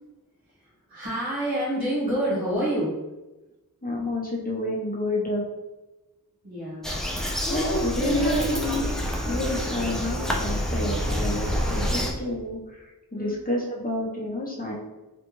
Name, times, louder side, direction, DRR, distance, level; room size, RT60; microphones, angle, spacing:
voice 1, 0.6-3.0 6.4-7.0 7.4-9.9 11.7-12.0 13.1-13.4, equal, 70° right, -9 dB, 1.5 m, -30 dB
voice 2, 3.8-5.4 7.4-8.8 9.3-12.6 13.1-14.7, left 1 dB, 25° left, -4 dB, 0.9 m, -29 dB
Bird vocalization bird call bird song, 6.8-12.1, equal, ahead, 0.5 m, -28 dB
3.3 x 2.5 x 3.1 m, 1.1 s
wide cardioid pair, 50°, 37 cm